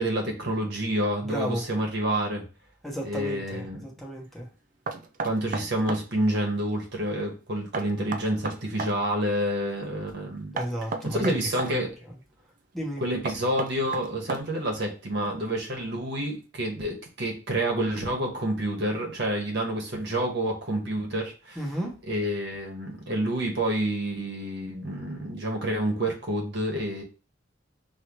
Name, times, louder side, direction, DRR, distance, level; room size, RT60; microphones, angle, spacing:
voice 1, 0.0-2.4 3.0-3.9 5.2-10.6 11.0-11.9 13.0-21.6 22.1-27.0, right 1 dB, 60° right, 1 dB, 1.4 m, -28 dB
voice 2, 1.2-1.6 2.8-4.5 10.5-11.7 12.7-13.1 21.6-22.0, equal, ahead, -2 dB, 1.0 m, -33 dB
Knock, 4.9-6.1 7.7-9.0 10.6-11.7 13.3-14.7, right 3 dB, 45° right, 0.4 m, -33 dB
5.3 x 3.0 x 3.0 m, 0.32 s
head